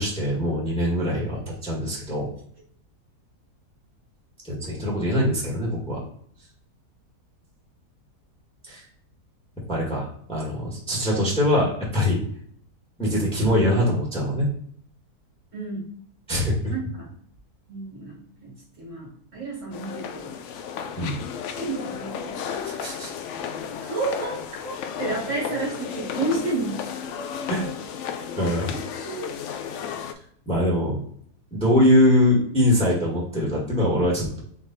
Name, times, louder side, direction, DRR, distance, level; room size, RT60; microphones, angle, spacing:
voice 1, 0.0-2.3 4.4-6.0 8.7-8.8 9.7-12.2 13.0-14.5 16.3-16.5 21.0-21.1 22.6-23.1 27.5-27.7 28.4-28.7 30.5-31.0 31.5-34.4, left 1 dB, 5° left, -4 dB, 1.3 m, -23 dB
voice 2, 16.7-17.1 17.7-20.4 21.6-22.3 23.8-24.4 24.6-24.7 25.0-26.8 28.6-29.3, right 3 dB, 50° right, -2 dB, 1.8 m, -31 dB
sound 1, 19.7-30.1, left 7 dB, 70° left, 0.7 m, -33 dB
4.1 x 3.1 x 4.0 m, 0.63 s
omnidirectional pair, 1.7 m